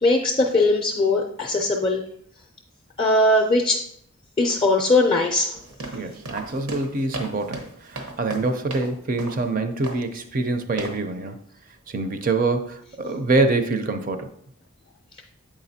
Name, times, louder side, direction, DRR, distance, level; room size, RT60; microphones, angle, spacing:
voice 1, 0.0-2.0 3.0-3.8 4.4-5.6, left 2 dB, 25° left, 0 dB, 0.4 m, -20 dB
sound 1, 5.5-8.9 9.2-9.4 9.8-10.1 10.8-11.0, right 2 dB, 85° right, 1.0 m, -35 dB
voice 2, 5.9-11.4 11.9-14.3, right 3 dB, 40° right, 8 dB, 0.5 m, -25 dB
7.3 x 4.9 x 2.7 m, 0.67 s
head